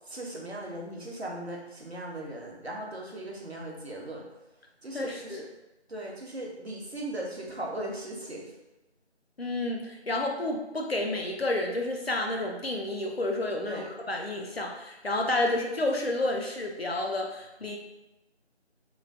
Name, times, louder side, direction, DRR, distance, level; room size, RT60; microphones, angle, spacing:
voice 1, 0.1-4.3 4.8-5.5 5.9-8.5 13.6-13.9, right 1 dB, 65° right, -1 dB, 0.7 m, -38 dB
voice 2, 4.9-5.4 9.4-17.8, left 2 dB, 60° left, 1 dB, 0.5 m, -30 dB
3.0 x 2.0 x 2.5 m, 0.98 s
figure-of-eight pair, 175°, 35 cm